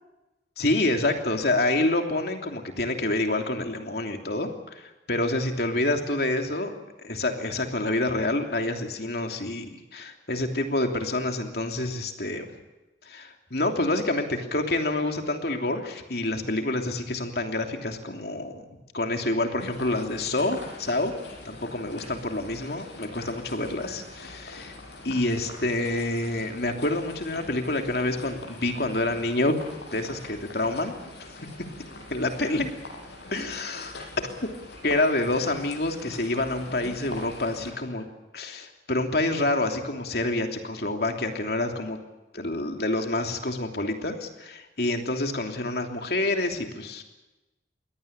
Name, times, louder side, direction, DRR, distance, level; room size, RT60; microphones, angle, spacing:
voice 1, 0.6-12.5 13.0-18.6 18.9-21.1 21.4-24.7 25.0-29.5 29.9-30.9 31.3-31.4 32.1-32.7 33.3-33.9 34.8-38.0 38.3-42.0 42.3-47.0, left 2 dB, 60° left, 4 dB, 3.0 m, -27 dB
sound 1, 19.6-37.7, left 2 dB, 80° left, 6.6 m, -43 dB
23.0 x 18.0 x 8.8 m, 1.0 s
head